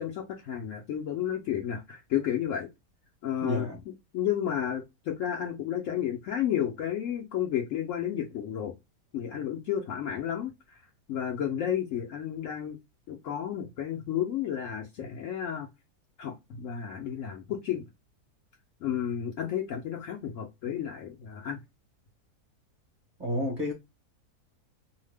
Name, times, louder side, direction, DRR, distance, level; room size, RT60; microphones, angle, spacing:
voice 1, 0.0-2.7 3.2-3.7 4.1-8.7 9.1-10.5 11.1-12.8 13.1-15.7 16.2-17.8 18.8-21.6, left 10 dB, 65° left, 0.8 m, -32 dB
voice 2, 3.4-3.8 23.2-23.7, left 1 dB, 35° right, 1.0 m, -30 dB
2.8 x 2.1 x 3.2 m
omnidirectional pair, 1.7 m